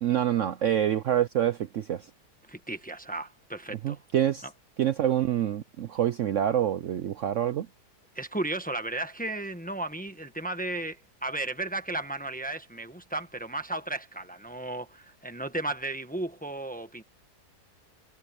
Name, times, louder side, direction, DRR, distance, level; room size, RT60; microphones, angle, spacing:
voice 1, 0.0-2.1 3.8-4.5 4.8-7.7, right 10 dB, 60° right, 0.9 m, -26 dB
voice 2, 2.5-4.0 4.4-4.5 8.1-17.0, right 2 dB, 5° left, 1.1 m, -34 dB
omnidirectional pair, 1.7 m